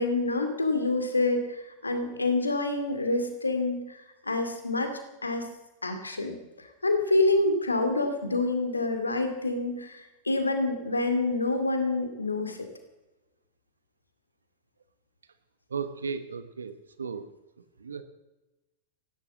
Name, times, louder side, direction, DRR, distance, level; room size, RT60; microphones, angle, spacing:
voice 1, 0.0-5.5 5.8-12.7, left 2 dB, 80° left, 6 dB, 2.3 m, -27 dB
voice 2, 15.7-17.3 17.8-18.0, right 5 dB, 70° right, 11 dB, 1.0 m, -35 dB
15.5 x 12.0 x 7.4 m, 1.0 s
figure-of-eight pair, 90°, 0 cm